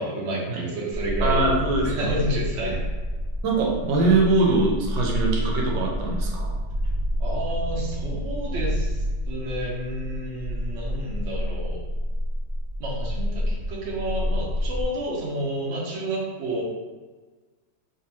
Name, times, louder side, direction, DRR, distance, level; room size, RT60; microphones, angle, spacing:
voice 1, 0.0-1.5 1.8-2.8 7.2-9.0 9.2-11.8 12.8-16.6, right 1 dB, 55° right, -4 dB, 0.8 m, -30 dB
sound 1, 0.9-14.8, equal, 20° right, 1.1 m, -28 dB
voice 2, 1.2-2.1 3.4-6.5, right 3 dB, 80° right, -1 dB, 1.3 m, -22 dB
3.4 x 2.9 x 2.9 m, 1.3 s
omnidirectional pair, 2.0 m